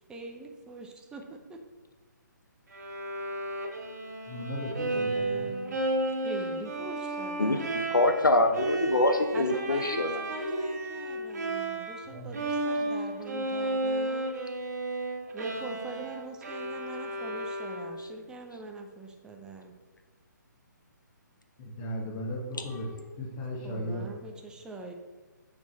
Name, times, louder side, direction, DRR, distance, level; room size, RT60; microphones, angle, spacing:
voice 1, 0.1-1.6 4.9-5.8 6.2-8.0 9.3-14.3 15.3-19.7 23.6-24.9, right 3 dB, 5° right, 3 dB, 0.6 m, -43 dB
Bowed string instrument, 2.7-12.1 12.3-18.2, right 1 dB, 60° right, 1.3 m, -33 dB
voice 2, 4.3-5.6 12.1-12.4 21.6-24.1, equal, 25° left, -1 dB, 1.7 m, -36 dB
voice 3, 7.4-10.2, left 2 dB, 90° left, 7 dB, 0.8 m, -25 dB
7.1 x 6.2 x 4.2 m, 1.3 s
figure-of-eight pair, 140°, 10 cm